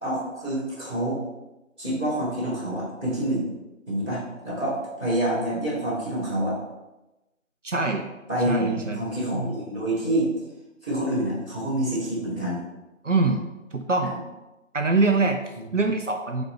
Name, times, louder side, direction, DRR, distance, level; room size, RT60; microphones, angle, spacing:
voice 1, 0.0-1.2 1.8-3.4 3.9-6.6 8.3-10.3 10.8-12.6 15.6-15.7, right 1 dB, 5° left, -22 dB, 2.1 m, -27 dB
voice 2, 7.6-8.1 8.5-9.0 13.0-14.2 14.7-16.4, right 3 dB, 65° right, 4 dB, 0.7 m, -24 dB
5.2 x 4.1 x 4.4 m, 1.0 s
figure-of-eight pair, 175°, 40 cm